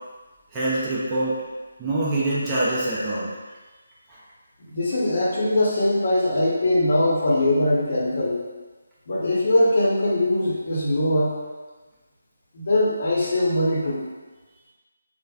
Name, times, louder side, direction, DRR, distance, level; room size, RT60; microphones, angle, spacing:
voice 1, 0.5-1.4 1.8-3.3 4.1-4.2, right 2 dB, 15° right, -9 dB, 0.5 m, -24 dB
voice 2, 4.7-8.4 9.1-11.3 12.5-14.0, left 1 dB, 50° left, -5 dB, 0.7 m, -21 dB
3.2 x 2.1 x 2.3 m, 1.3 s
figure-of-eight pair, 155°, 0 cm